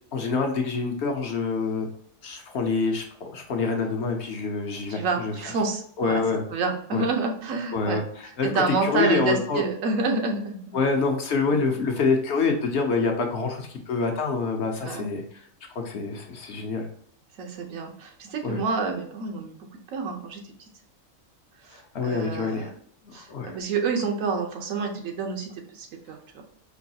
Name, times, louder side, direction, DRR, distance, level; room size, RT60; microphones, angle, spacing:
voice 1, 0.1-1.9 2.2-5.3 6.0-6.4 6.9-7.0 7.7-9.6 10.7-15.4 15.7-16.9 18.4-18.6 21.7-22.7 23.1-23.6, left 4 dB, 65° left, 3 dB, 0.8 m, -26 dB
voice 2, 4.9-6.2 6.5-8.0 8.4-10.6 14.8-15.1 17.4-19.6 19.9-20.4 21.6-22.7 23.1-26.4, right 4 dB, 85° right, 3 dB, 1.1 m, -28 dB
4.6 x 2.3 x 2.7 m, 0.62 s
omnidirectional pair, 1.4 m